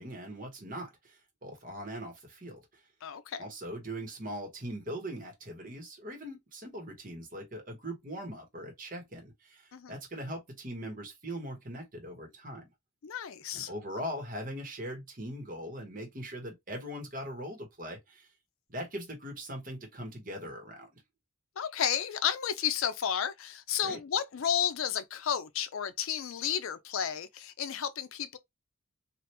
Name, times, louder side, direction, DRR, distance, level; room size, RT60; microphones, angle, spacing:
voice 1, 0.0-2.8 3.4-12.7 13.5-18.3 18.7-21.0 23.8-24.0, equal, 40° right, 1.2 m, -41 dB
voice 2, 3.0-3.4 9.7-10.0 13.0-13.7 21.6-28.4, left 8 dB, 75° left, 0.4 m, -32 dB
3.3 x 2.5 x 2.9 m
head